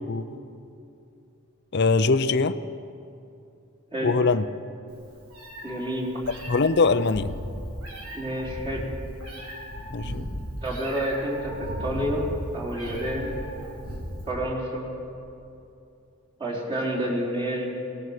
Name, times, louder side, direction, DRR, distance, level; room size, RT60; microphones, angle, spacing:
voice 1, 1.7-2.6 4.0-4.5 6.5-7.3 9.9-10.3, left 4 dB, 50° left, 12 dB, 0.6 m, -22 dB
Meow, 4.9-14.3, equal, 85° right, 4.8 m, -36 dB
voice 2, 5.6-6.1 8.1-8.9 10.6-12.3 12.5-13.4 14.3-14.9 16.4-17.7, right 1 dB, 25° right, -6 dB, 4.0 m, -29 dB
23.0 x 18.5 x 6.6 m, 2.7 s
head